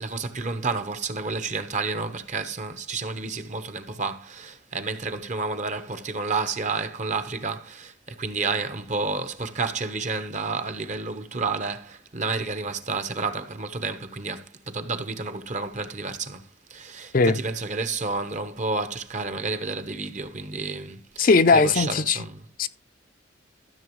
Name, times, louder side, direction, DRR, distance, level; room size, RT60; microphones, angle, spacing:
voice 1, 0.0-22.5, right 4 dB, 40° right, 1.0 m, -30 dB
voice 2, 21.2-22.2 22.6-22.7, left 4 dB, 45° left, 0.5 m, -19 dB
13.5 x 7.0 x 3.1 m
head